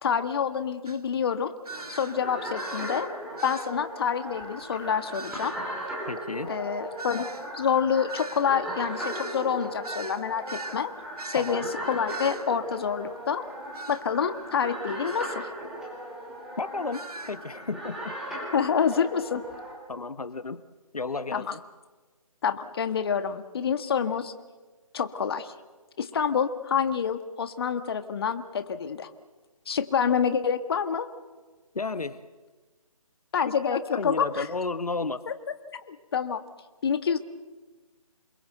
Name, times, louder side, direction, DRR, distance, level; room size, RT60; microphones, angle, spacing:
voice 1, 0.0-1.5 1.9-3.1 3.4-5.5 6.5-7.2 7.5-10.9 11.2-13.4 13.9-15.5 18.5-19.4 21.3-21.5 22.4-24.3 24.9-25.5 26.0-29.1 29.7-31.1 33.3-34.5 35.3-35.4 35.7-36.4 36.8-37.2, left 7 dB, 40° left, 10 dB, 1.6 m, -27 dB
sound 1, 0.9-1.0 1.7-2.2 2.6-3.1 3.4-3.8 5.1-5.6 7.0-10.8 11.2-11.6 12.1-12.5 13.7-14.0 15.1-15.3 16.9-17.4, right 3 dB, 80° right, 1.3 m, -40 dB
sound 2, 1.7-19.7, right 1 dB, 5° right, 4.2 m, -38 dB
voice 2, 6.0-6.5 11.3-11.7 16.6-18.2 19.9-20.6 20.9-21.4 31.7-32.2 33.3-35.2, left 3 dB, 80° left, 13 dB, 1.1 m, -33 dB
28.5 x 21.5 x 8.0 m, 1.3 s
figure-of-eight pair, 155°, 19 cm